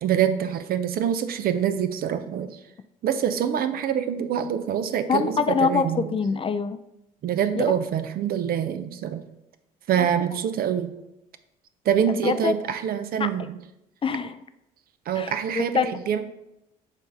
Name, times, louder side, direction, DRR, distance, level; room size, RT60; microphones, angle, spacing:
voice 1, 0.0-2.6 3.0-6.1 7.2-9.2 9.9-10.9 11.9-13.5 15.1-15.7 16.1-16.2, right 9 dB, 55° right, 10 dB, 0.6 m, -25 dB
voice 2, 5.1-6.8 7.6-7.7 10.0-10.1 12.1-12.5 13.2-13.5 14.0-14.4 15.1-16.0, left 5 dB, 30° left, 11 dB, 0.4 m, -25 dB
7.2 x 2.6 x 5.5 m, 0.88 s
hypercardioid pair, 60°, 18 cm